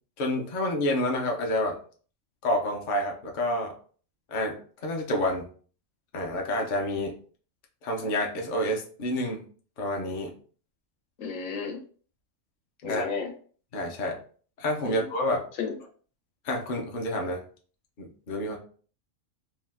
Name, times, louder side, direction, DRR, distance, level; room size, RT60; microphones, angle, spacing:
voice 1, 0.2-1.8 2.4-3.7 4.3-4.6 4.8-5.5 6.1-7.1 7.8-9.5 9.8-10.3 12.8-13.1 13.7-14.2 14.6-15.4 16.4-17.4 18.0-18.6, left 1 dB, 45° left, 1 dB, 0.7 m, -28 dB
voice 2, 11.2-11.8 12.8-13.3 14.8-15.0 15.6-15.7, left 5 dB, 80° left, 3 dB, 1.1 m, -32 dB
2.8 x 2.2 x 3.3 m, 0.43 s
omnidirectional pair, 1.4 m